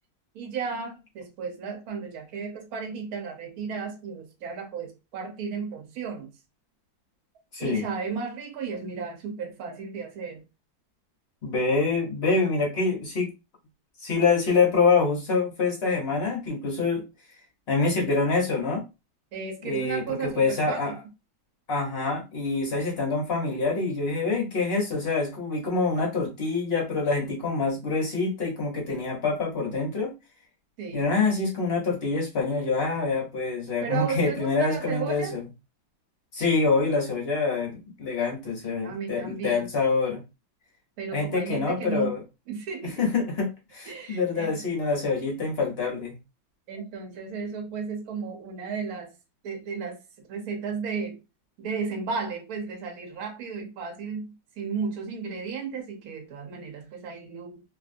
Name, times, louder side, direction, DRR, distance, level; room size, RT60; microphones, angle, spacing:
voice 1, 0.3-6.3 7.6-10.4 19.3-21.0 30.8-31.1 33.8-35.4 38.8-39.7 41.0-42.2 42.5-43.0 43.9-44.6 46.7-49.1 49.4-50.0 50.3-51.2 51.6-57.6, right 5 dB, 60° right, 1.2 m, -34 dB
voice 2, 7.5-7.9 11.4-13.3 14.0-17.0 17.7-18.8 19.6-20.9 21.7-30.1 30.9-35.4 36.3-40.2 41.1-42.2 43.0-46.1, left 4 dB, 50° left, 0.8 m, -26 dB
2.9 x 2.6 x 2.5 m
omnidirectional pair, 2.1 m